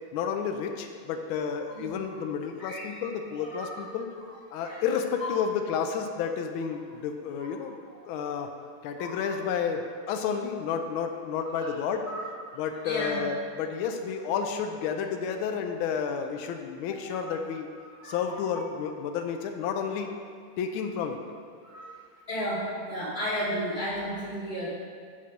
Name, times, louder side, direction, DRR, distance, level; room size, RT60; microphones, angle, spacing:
voice 1, 0.1-4.1 4.5-7.8 8.1-8.5 8.8-12.1 12.6-17.7 18.0-20.1 20.6-21.2, left 7 dB, 80° left, 5 dB, 1.4 m, -31 dB
voice 2, 2.6-3.0 3.4-3.8 4.5-4.9 5.2-5.4 7.4-8.0 9.0-9.3 11.5-11.7 12.1-13.2 17.1-17.4 18.0-18.6 21.6-21.9 22.3-24.7, equal, 20° left, -9 dB, 2.3 m, -35 dB
7.2 x 4.2 x 6.3 m, 2.1 s
omnidirectional pair, 2.3 m